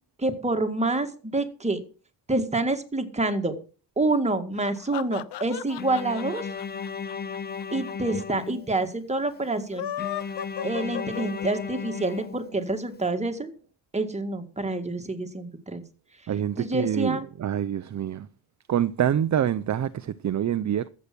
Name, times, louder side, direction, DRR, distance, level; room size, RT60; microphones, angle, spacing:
voice 1, 0.2-1.8 2.3-3.5 4.0-6.5 7.7-9.9 10.6-13.5 13.9-15.8 16.6-17.3, right 2 dB, 15° right, 2.0 m, -27 dB
sound 1, 4.6-7.9 8.2-8.3 8.5-8.6 9.6-11.7, left 11 dB, 80° left, 0.8 m, -35 dB
Bowed string instrument, 5.8-9.0 10.0-12.9, left 6 dB, 25° left, 0.8 m, -35 dB
voice 2, 16.3-18.3 18.7-20.9, right 10 dB, 45° right, 0.7 m, -26 dB
14.0 x 8.4 x 6.0 m
cardioid pair, 120°, 41 cm